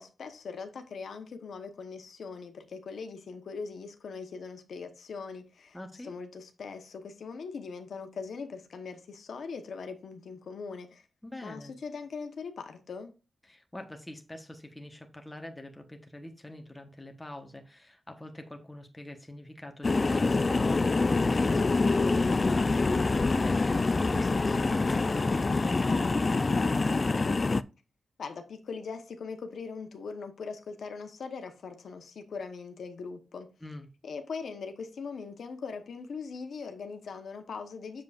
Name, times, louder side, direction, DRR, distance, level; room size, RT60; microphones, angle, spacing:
voice 1, 0.0-11.1 11.4-13.1 28.2-33.5 34.0-38.0, left 5 dB, 65° left, 1.0 m, -41 dB
voice 2, 5.7-6.1 11.2-11.7 13.5-26.9 33.6-33.9, left 1 dB, 10° left, 1.1 m, -44 dB
sound 1, 19.8-27.6, left 3 dB, 30° left, 0.3 m, -25 dB
7.5 x 7.0 x 2.5 m
wide cardioid pair, 145°, 0 cm